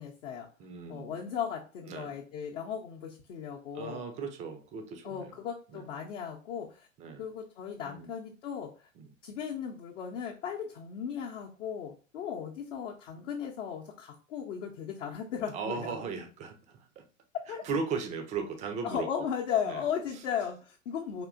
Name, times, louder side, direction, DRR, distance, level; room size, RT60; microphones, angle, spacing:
voice 1, 0.0-0.5 0.9-4.0 5.0-6.9 7.2-8.7 9.2-16.1 17.5-17.6 18.8-21.2, left 8 dB, 65° left, -2 dB, 0.7 m, -36 dB
voice 2, 0.6-1.1 1.9-2.1 3.7-5.4 5.7-5.8 7.0-7.2 7.8-8.1 9.0-9.1 15.5-17.0 17.6-19.1 19.7-19.8, right 5 dB, 20° right, 7 dB, 0.4 m, -37 dB
3.6 x 2.7 x 2.4 m, 0.36 s
figure-of-eight pair, 95°, 39 cm